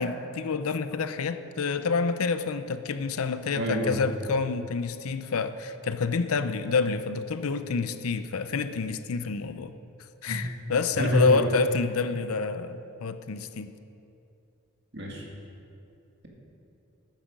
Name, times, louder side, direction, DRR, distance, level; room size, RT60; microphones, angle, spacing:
voice 1, 0.0-9.7 10.2-13.7, left 4 dB, 85° left, 11 dB, 0.5 m, -28 dB
voice 2, 3.6-3.9 10.3-10.4 11.0-11.5 14.9-15.2, equal, 50° right, -1 dB, 2.0 m, -26 dB
12.0 x 9.2 x 5.1 m, 2.7 s
head